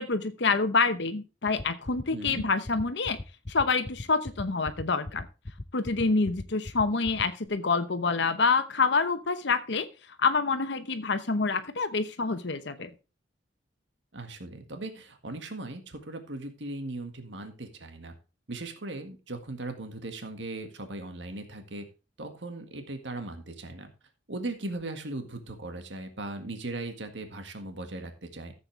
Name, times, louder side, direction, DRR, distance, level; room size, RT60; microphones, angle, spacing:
voice 1, 0.0-3.2 3.5-5.3 5.7-9.9 10.2-12.9, left 4 dB, 65° left, 9 dB, 0.9 m, -27 dB
sound 1, 1.5-7.5, left 1 dB, 30° left, 0.7 m, -37 dB
voice 2, 2.1-2.5 14.1-18.1 18.5-21.9 22.2-23.9 24.3-28.5, right 2 dB, 70° right, 6 dB, 1.8 m, -38 dB
14.0 x 7.9 x 3.3 m, 0.31 s
head